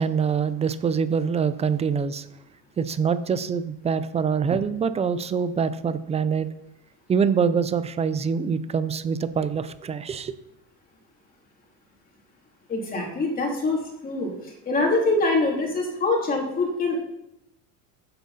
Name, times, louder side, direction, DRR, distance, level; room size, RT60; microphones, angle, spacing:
voice 1, 0.0-2.3 2.8-6.5 7.1-10.3, right 6 dB, 15° right, 0.4 m, -24 dB
voice 2, 12.7-14.3 14.6-17.0, left 2 dB, 20° left, 3.0 m, -24 dB
15.0 x 8.4 x 4.1 m
cardioid pair, 155°, 38 cm